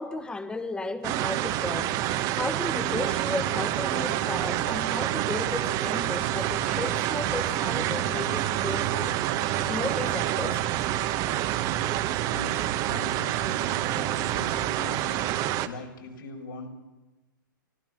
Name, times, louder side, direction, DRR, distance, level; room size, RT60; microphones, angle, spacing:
voice 1, 0.0-10.7 14.4-15.1, left 2 dB, 10° left, 10 dB, 1.5 m, -35 dB
sound 1, 1.0-15.7, right 13 dB, 35° right, 1.1 m, -27 dB
sound 2, 3.9-13.5, right 12 dB, 60° right, 0.7 m, -42 dB
voice 2, 12.3-12.6 12.9-16.7, left 2 dB, 70° left, 3 dB, 5.1 m, -41 dB
24.5 x 15.5 x 7.6 m, 1.1 s
figure-of-eight pair, 115°, 11 cm